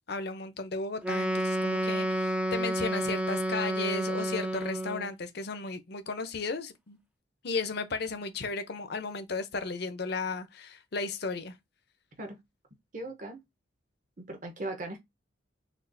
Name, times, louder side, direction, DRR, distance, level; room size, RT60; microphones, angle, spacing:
voice 1, 0.1-7.0 7.4-11.6, left 4 dB, 55° left, 0.6 m, -35 dB
Wind instrument woodwind instrument, 1.0-5.1, right 1 dB, 5° right, 0.3 m, -30 dB
voice 2, 12.9-13.4 14.2-15.0, right 2 dB, 40° right, 0.8 m, -38 dB
6.1 x 2.4 x 2.6 m
head